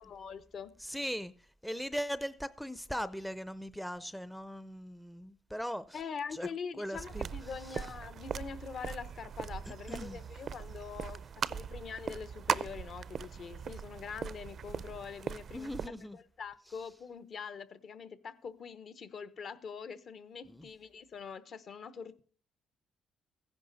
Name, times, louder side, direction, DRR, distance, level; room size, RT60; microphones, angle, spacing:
voice 1, 0.0-0.7 5.9-22.2, left 6 dB, 55° left, 1.0 m, -44 dB
voice 2, 0.8-1.3 1.6-6.0 6.3-6.5 6.8-7.3 7.7-7.8 9.9-10.2 15.5-16.2 20.5-20.7, equal, ahead, 0.5 m, -39 dB
sound 1, 6.9-15.9, right 7 dB, 50° right, 0.5 m, -39 dB
15.0 x 10.5 x 4.0 m
cardioid pair, 100°, 0 cm